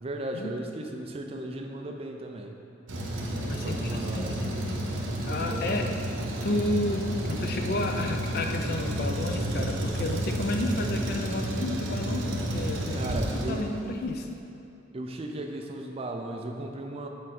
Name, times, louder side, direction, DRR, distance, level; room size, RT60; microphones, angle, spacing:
voice 1, 0.0-2.6 3.6-4.8 5.4-5.8 12.9-13.7 14.9-17.1, right 1 dB, 30° right, 3 dB, 0.4 m, -36 dB
Truck, 2.9-14.1, right 1 dB, 90° right, 0.8 m, -31 dB
voice 2, 3.4-5.9 6.4-13.1 13.5-14.3, left 2 dB, 50° left, 3 dB, 0.5 m, -31 dB
6.5 x 4.8 x 4.1 m, 2.7 s
head